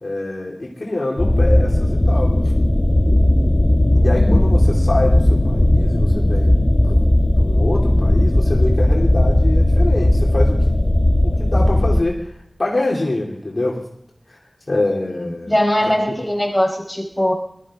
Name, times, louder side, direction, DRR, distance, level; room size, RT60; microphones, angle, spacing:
voice 1, 0.0-2.3 3.9-7.1 7.4-10.8 11.2-12.3 12.6-13.8 14.3-14.4 14.7-15.5 15.9-16.0, left 2 dB, 65° left, -2 dB, 2.9 m, -25 dB
sound 1, 1.2-12.0, left 1 dB, 30° left, 1.1 m, -16 dB
voice 2, 15.5-17.3, equal, 10° left, -2 dB, 4.7 m, -20 dB
20.5 x 13.0 x 3.7 m, 0.70 s
wide cardioid pair, 55°, 0 cm